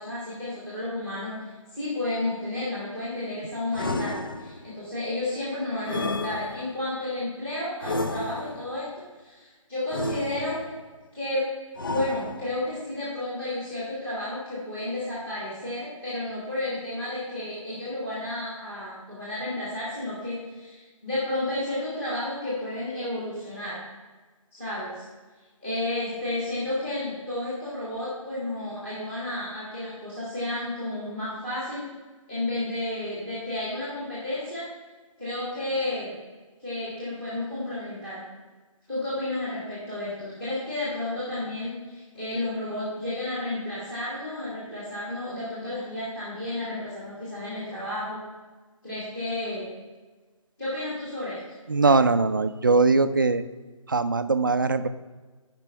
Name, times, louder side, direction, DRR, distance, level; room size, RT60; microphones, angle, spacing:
voice 1, 0.0-10.6 11.1-11.4 11.9-23.8 24.5-25.0 25.6-31.9 32.3-34.7 35.2-36.2 36.6-38.2 38.9-48.2 48.8-49.7 50.6-51.4 51.8-52.0, left 1 dB, 10° left, -9 dB, 1.4 m, -32 dB
sound 1, 3.7-4.8 5.9-6.9 7.8-8.8 9.9-10.8 11.8-12.7, left 2 dB, 40° left, 0.4 m, -32 dB
voice 2, 51.7-53.4 53.9-54.9, right 3 dB, 40° right, 10 dB, 0.4 m, -21 dB
12.0 x 5.2 x 4.5 m, 1.3 s
hypercardioid pair, 175°, 18 cm